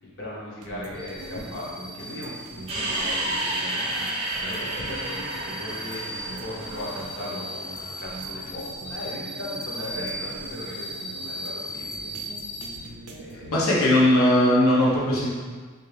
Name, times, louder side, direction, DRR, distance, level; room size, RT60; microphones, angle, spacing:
voice 1, 0.0-12.3 12.7-13.5, left 1 dB, 50° left, -5 dB, 0.9 m, -38 dB
sound 1, 0.6-13.5, right 2 dB, 85° right, 0.4 m, -43 dB
sound 2, 0.9-12.8, equal, 5° left, 0.3 m, -38 dB
sound 3, 2.7-8.1, right 1 dB, 30° right, 0.7 m, -31 dB
voice 2, 13.5-15.3, left 1 dB, 85° left, -6 dB, 0.9 m, -19 dB
3.4 x 2.7 x 3.3 m, 1.5 s
head